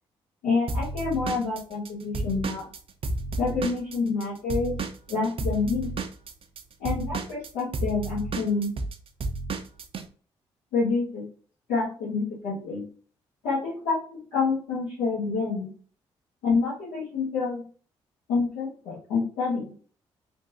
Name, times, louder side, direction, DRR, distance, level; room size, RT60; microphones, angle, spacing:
voice 1, 0.4-2.7 3.4-4.7 5.1-5.9 6.8-8.7 10.7-11.2 11.7-12.8 13.4-15.7 16.4-17.6 18.3-19.6, left 4 dB, 80° left, -11 dB, 1.4 m, -27 dB
Drum kit / Drum, 0.7-4.2 4.5-10.0, right 3 dB, 45° right, 0.5 m, -31 dB
3.3 x 2.6 x 2.6 m, 0.42 s
hypercardioid pair, 40°, 13 cm